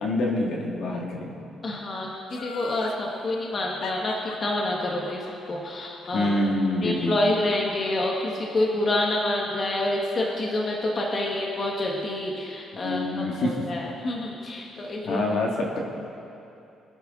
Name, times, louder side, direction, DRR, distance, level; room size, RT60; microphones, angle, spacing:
voice 1, 0.0-1.4 6.1-7.1 12.7-13.7 15.0-15.8, left 2 dB, 60° left, 0 dB, 1.7 m, -26 dB
voice 2, 1.6-6.4 6.8-15.2, left 1 dB, 30° left, -2 dB, 1.3 m, -28 dB
Laughter, 2.3-3.0 3.8-6.9 7.3-7.4, left 6 dB, 85° left, 0.8 m, -40 dB
22.5 x 9.6 x 3.7 m, 2.7 s
cardioid pair, 165°, 0 cm